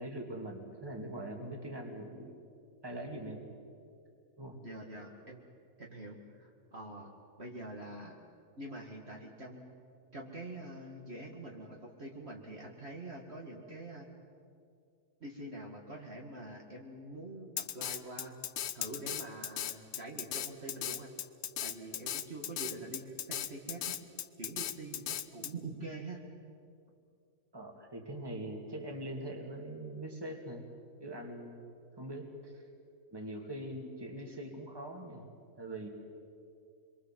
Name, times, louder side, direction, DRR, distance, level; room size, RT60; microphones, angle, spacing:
voice 1, 0.0-2.4 2.8-3.5 4.4-4.6 27.5-30.7 31.0-31.6 32.0-32.7 33.1-35.3 35.6-35.9, right 1 dB, 15° right, 3 dB, 2.5 m, -42 dB
voice 2, 4.6-5.4 5.8-7.1 7.4-8.2 8.6-9.7 10.1-14.1 15.2-18.3 18.7-21.1 21.6-24.0 24.4-26.2, right 2 dB, 40° right, -1 dB, 2.3 m, -45 dB
Drum kit, 17.6-25.5, left 10 dB, 75° left, 1.3 m, -37 dB
26.5 x 23.0 x 7.6 m, 2.4 s
omnidirectional pair, 1.6 m